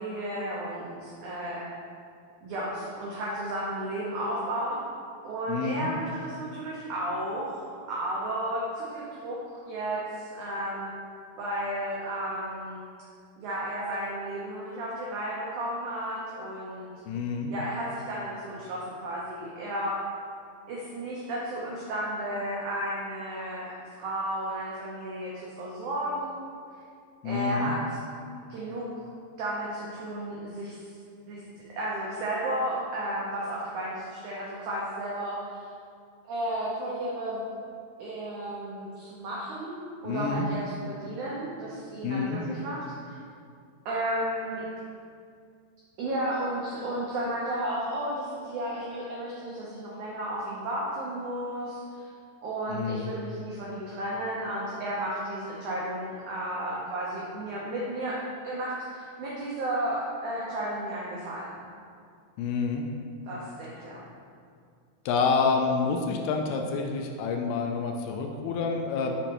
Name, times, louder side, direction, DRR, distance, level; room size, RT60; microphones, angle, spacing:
voice 1, 0.0-1.6 2.4-4.8 5.2-7.6 7.9-10.9 11.4-12.8 13.4-16.9 17.5-20.0 20.7-26.4 27.2-27.8 28.5-29.1 29.4-30.8 31.3-31.4 31.8-35.6 36.2-37.4 38.0-43.2 43.9-44.6 46.0-52.1 52.4-61.7 63.2-64.0, right 1 dB, 85° right, -5 dB, 1.7 m, -33 dB
voice 2, 5.5-5.9 17.1-17.5 27.2-27.7 40.0-40.5 42.0-42.4 52.7-53.1 62.4-62.8 65.1-69.2, left 4 dB, 80° left, 3 dB, 2.3 m, -28 dB
6.9 x 6.1 x 2.9 m, 2.3 s
omnidirectional pair, 4.7 m